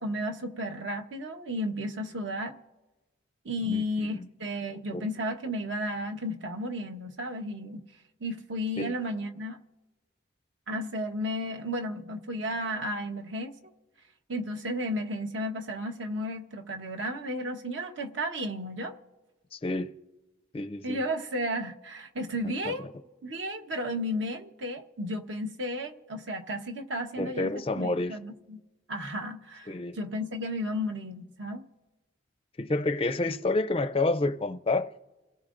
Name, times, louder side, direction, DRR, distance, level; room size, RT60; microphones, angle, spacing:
voice 1, 0.0-2.5 3.4-7.8 8.2-9.6 10.7-13.5 14.3-19.0 20.8-22.9 23.2-28.6 28.9-31.7, equal, 65° right, 1.1 m, -33 dB
voice 2, 3.6-4.2 4.9-5.1 8.8-8.9 19.5-19.9 20.5-21.0 22.7-22.8 27.2-28.2 29.7-30.0 32.6-34.9, left 2 dB, 25° left, 0.4 m, -29 dB
29.0 x 17.0 x 2.5 m
head